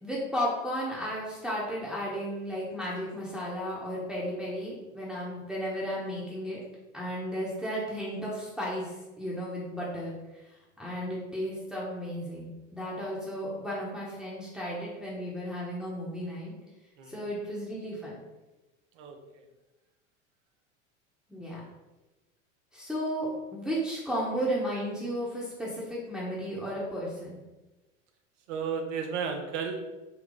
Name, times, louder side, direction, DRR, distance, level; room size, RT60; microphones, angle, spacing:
voice 1, 0.0-6.6 6.9-16.5 17.1-18.2 21.3-21.6 22.7-27.4, equal, ahead, -7 dB, 1.0 m, -34 dB
voice 2, 28.5-29.8, right 6 dB, 70° right, 4 dB, 0.8 m, -33 dB
4.0 x 2.3 x 3.7 m, 1.1 s
hypercardioid pair, 90°, 37 cm